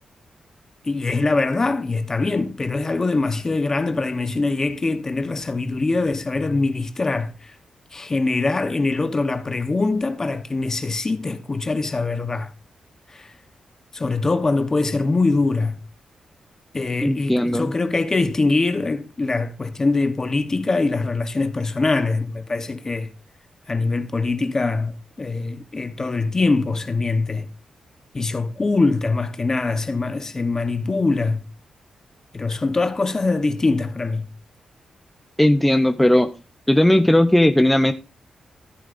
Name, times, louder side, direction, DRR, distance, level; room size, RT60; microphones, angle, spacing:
voice 1, 0.8-7.5 7.9-12.5 13.1-13.3 13.9-15.8 16.7-23.1 23.7-27.5 28.1-31.4 32.3-34.3, left 3 dB, 25° left, 1.0 m, -23 dB
voice 2, 17.0-17.7 35.4-36.3 36.7-37.9, left 1 dB, 5° left, 0.6 m, -17 dB
14.0 x 12.5 x 2.6 m
wide cardioid pair, 145°, 2 cm